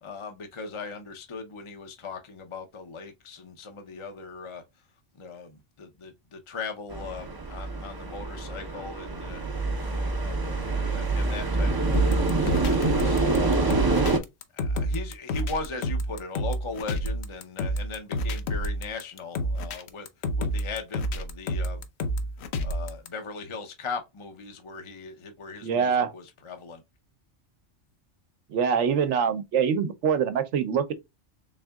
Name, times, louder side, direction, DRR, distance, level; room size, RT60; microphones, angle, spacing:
voice 1, 0.0-4.6 5.1-9.4 9.9-13.2 13.7-14.1 14.5-20.1 20.4-21.8 22.6-26.8, left 4 dB, 35° left, 0.5 m, -39 dB
sound 1, 6.9-14.2, right 3 dB, 30° right, 0.4 m, -26 dB
sound 2, 11.9-23.1, equal, 65° left, 0.9 m, -29 dB
voice 2, 25.6-26.1 28.5-30.9, right 7 dB, 75° right, 1.0 m, -24 dB
4.0 x 3.6 x 2.2 m
omnidirectional pair, 1.3 m